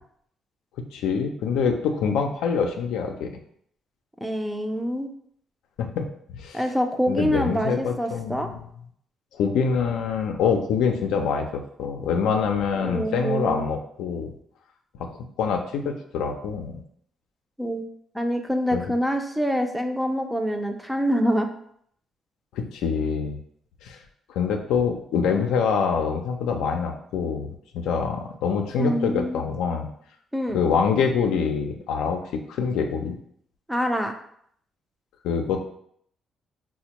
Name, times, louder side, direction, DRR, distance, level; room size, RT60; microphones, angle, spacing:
voice 1, 0.9-3.3 5.8-6.6 7.1-8.7 9.3-14.3 15.0-16.8 18.7-18.8 22.5-23.4 23.8-24.0 24.3-29.9 30.5-32.2 32.5-33.2 35.2-35.6, left 6 dB, 90° left, 4 dB, 0.4 m, -25 dB
voice 2, 4.2-5.1 6.5-8.5 12.8-13.6 17.6-17.9 18.1-21.5 28.8-29.4 30.3-30.6 33.7-34.1, equal, 5° right, 5 dB, 0.4 m, -25 dB
4.2 x 2.1 x 2.9 m, 0.67 s
cardioid pair, 90°, 0 cm